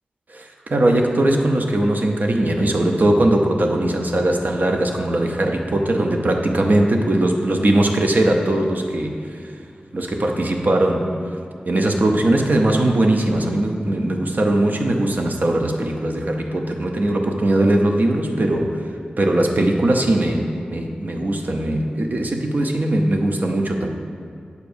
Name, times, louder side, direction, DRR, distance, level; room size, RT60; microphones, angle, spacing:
voice 1, 0.3-9.5 9.9-11.1 11.7-18.9 19.2-23.9, right 1 dB, 65° right, 3 dB, 0.6 m, -20 dB
8.0 x 6.6 x 2.6 m, 2.3 s
wide cardioid pair, 50°, 3 cm